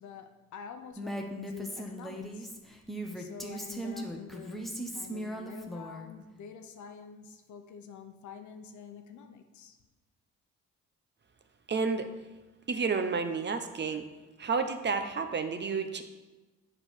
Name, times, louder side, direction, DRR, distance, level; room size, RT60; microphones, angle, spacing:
voice 1, 0.0-2.5 3.2-9.8, left 6 dB, 70° left, 7 dB, 0.9 m, -47 dB
Female speech woman speaking, 1.0-6.1, right 1 dB, ahead, 1.0 m, -38 dB
voice 2, 11.7-12.1 12.7-14.1 14.4-16.0, right 5 dB, 35° right, 7 dB, 0.8 m, -30 dB
7.7 x 4.5 x 6.2 m, 1.2 s
cardioid pair, 90°, 30 cm